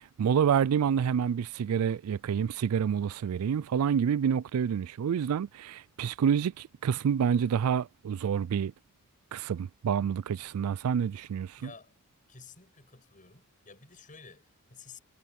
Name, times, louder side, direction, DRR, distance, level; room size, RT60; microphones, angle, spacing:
voice 1, 0.2-8.7 9.3-11.5, right 7 dB, 80° right, 0.3 m, -28 dB
voice 2, 11.6-11.9 12.3-15.0, left 5 dB, 40° left, 6.8 m, -52 dB
head